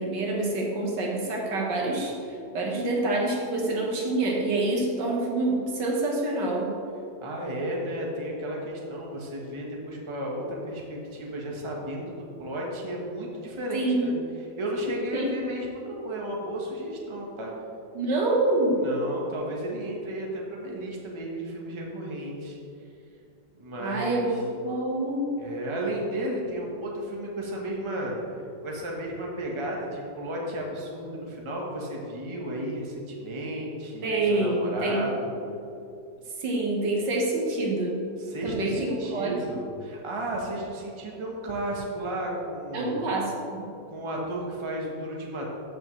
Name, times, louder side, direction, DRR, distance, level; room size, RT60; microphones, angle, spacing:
voice 1, 0.0-6.7 13.7-14.1 15.1-15.3 17.9-18.8 23.8-25.3 34.0-35.1 36.4-38.0 38.4-39.3 42.7-43.7, right 2 dB, 75° right, -2 dB, 2.0 m, -27 dB
voice 2, 7.2-14.2 14.6-17.5 18.8-22.6 23.5-24.4 25.4-28.4 28.6-35.3 38.2-43.0 43.9-45.5, right 1 dB, 20° right, -2 dB, 1.1 m, -33 dB
14.0 x 6.0 x 3.2 m, 2.7 s
omnidirectional pair, 1.9 m